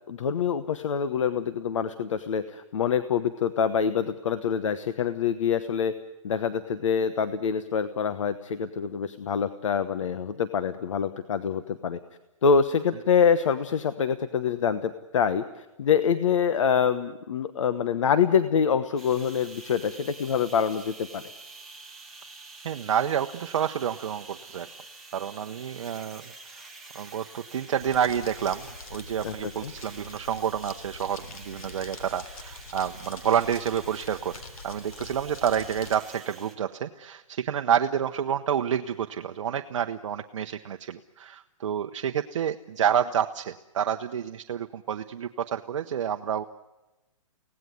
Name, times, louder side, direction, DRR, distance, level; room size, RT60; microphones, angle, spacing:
voice 1, 0.1-6.0 6.2-12.0 12.4-21.2 29.2-29.3 29.6-29.7, left 7 dB, 65° left, 12 dB, 1.1 m, -25 dB
sound 1, 19.0-36.5, right 3 dB, ahead, 1.6 m, -48 dB
voice 2, 22.6-24.7 25.1-26.3 26.9-46.4, right 9 dB, 60° right, 6 dB, 0.9 m, -29 dB
Crumpling crinkling, 27.8-36.0, left 3 dB, 85° left, 3.8 m, -44 dB
25.5 x 18.0 x 9.4 m, 1.0 s
hypercardioid pair, 170°, 18 cm